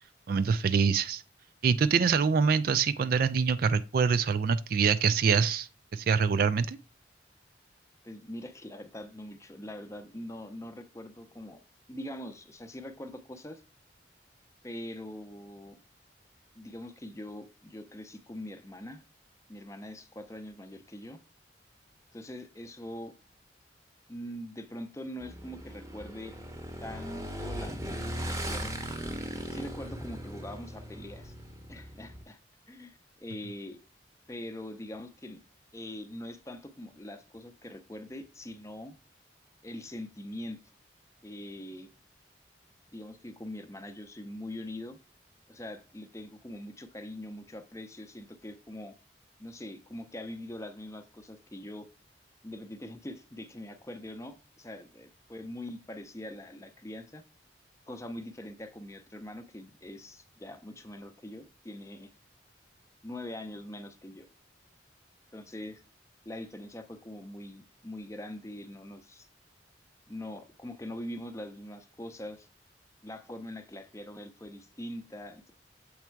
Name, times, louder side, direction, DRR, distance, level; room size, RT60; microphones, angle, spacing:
voice 1, 0.3-1.2 1.6-6.8, right 6 dB, 50° right, 0.3 m, -25 dB
voice 2, 8.0-11.6 11.9-13.6 14.6-15.8 16.5-19.0 19.5-21.2 22.1-23.1 24.1-26.4 26.8-28.8 29.5-31.3 31.7-32.4 32.7-33.8 34.3-35.4 35.7-39.0 39.6-40.6 41.2-41.9 42.9-45.0 45.5-48.9 49.4-51.9 52.4-57.2 57.9-62.1 63.0-64.3 65.3-65.8 66.3-69.3 70.1-72.5 73.0-75.5, left 1 dB, 15° left, 0.5 m, -43 dB
Motorcycle / Engine, 25.2-32.2, equal, 15° right, 0.7 m, -38 dB
7.2 x 3.4 x 4.5 m
head